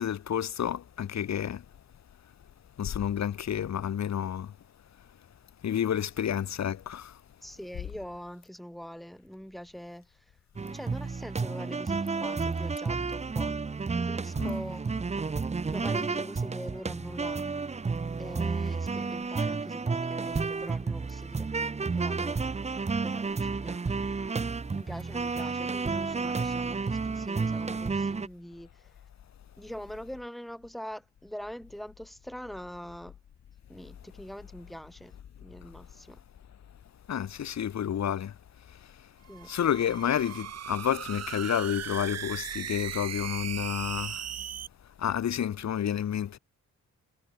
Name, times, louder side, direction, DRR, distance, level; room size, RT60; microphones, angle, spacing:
voice 1, 0.0-1.6 2.8-4.5 5.6-7.2 14.4-14.6 37.1-38.3 39.5-44.3 45.0-46.4, left 9 dB, 60° left, 1.3 m, -30 dB
voice 2, 7.4-10.3 10.6-13.6 13.9-14.9 15.6-17.4 18.2-22.4 23.0-24.1 24.7-28.9 29.6-33.2 33.7-36.2 39.3-39.6, equal, ahead, 2.3 m, -43 dB
sound 1, 10.6-28.3, right 4 dB, 20° right, 0.8 m, -31 dB
sound 2, 39.3-44.7, right 9 dB, 55° right, 0.9 m, -38 dB
wide cardioid pair, 160°, 32 cm